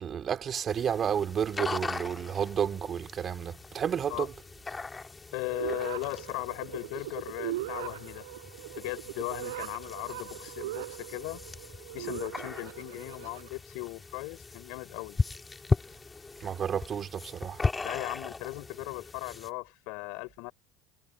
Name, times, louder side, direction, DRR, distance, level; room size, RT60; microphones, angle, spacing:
voice 1, 0.0-4.3 16.4-17.6, right 8 dB, 40° right, 2.8 m, -31 dB
sound 1, 0.7-19.5, left 3 dB, 20° left, 2.4 m, -38 dB
voice 2, 5.3-8.2 8.7-11.4 11.9-15.2 17.8-20.5, left 29 dB, 65° left, 4.3 m, -37 dB
sound 2, 5.5-13.5, right 17 dB, 75° right, 6.6 m, -40 dB
hypercardioid pair, 75°, 0 cm